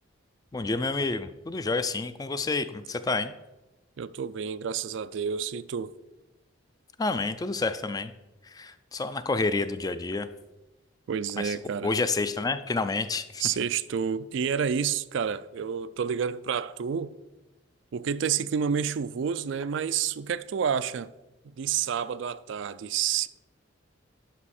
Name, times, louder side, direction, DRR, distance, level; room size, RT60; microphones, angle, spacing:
voice 1, 0.5-3.3 7.0-8.1 8.6-10.3 11.4-11.5 11.8-13.4, left 3 dB, 20° left, 0.3 m, -29 dB
voice 2, 4.0-5.9 11.1-11.9 13.4-17.1 17.9-21.1 21.4-23.3, right 7 dB, 65° right, 0.3 m, -29 dB
11.5 x 5.4 x 4.3 m
head